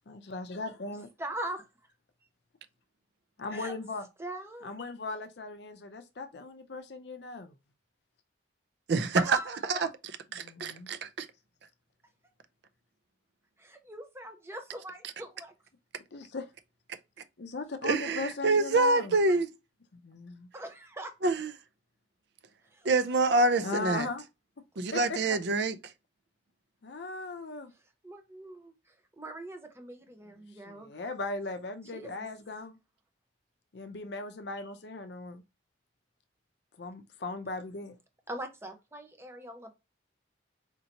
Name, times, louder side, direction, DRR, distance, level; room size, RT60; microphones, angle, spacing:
voice 1, 0.1-1.1 3.4-4.1 4.6-7.5 10.4-10.9 16.1-16.5 17.4-19.2 20.0-20.5 23.6-24.2 24.9-25.4 26.8-27.7 30.6-32.8 33.7-35.4 36.8-37.9, left 3 dB, 55° left, 0.5 m, -38 dB
voice 2, 1.2-1.9 3.5-3.7 4.2-4.7 9.2-9.9 13.6-15.5 20.5-21.1 22.7-22.9 28.0-30.9 31.9-32.2 38.3-39.7, right 1 dB, 15° right, 0.6 m, -41 dB
voice 3, 8.9-9.4 9.7-9.9 10.3-11.3 17.8-19.5 21.2-21.5 22.8-24.1 24.8-25.8, right 3 dB, 55° right, 0.5 m, -26 dB
4.3 x 2.7 x 2.8 m
head